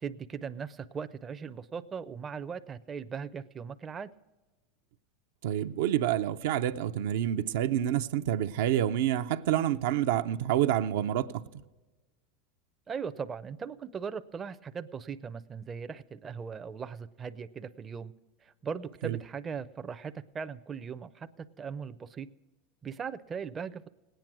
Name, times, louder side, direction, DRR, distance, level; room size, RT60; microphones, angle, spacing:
voice 1, 0.0-4.1 12.9-18.1 18.4-22.3 22.8-23.8, right 6 dB, 20° right, 0.5 m, -39 dB
voice 2, 5.4-11.4 19.0-19.2, right 11 dB, 75° right, 0.5 m, -28 dB
19.0 x 9.1 x 6.0 m
supercardioid pair, 135°, 0 cm